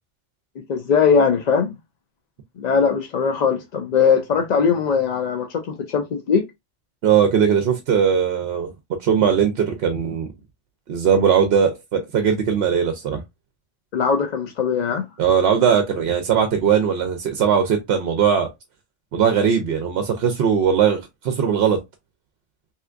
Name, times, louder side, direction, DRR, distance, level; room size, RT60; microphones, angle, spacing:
voice 1, 0.7-1.7 2.6-6.4 13.9-15.1, left 6 dB, 60° left, 0.4 m, -20 dB
voice 2, 7.0-8.7 9.0-10.3 10.9-13.2 15.2-18.5 19.1-21.8, right 7 dB, 65° right, 0.8 m, -19 dB
3.4 x 2.8 x 2.4 m
omnidirectional pair, 1.2 m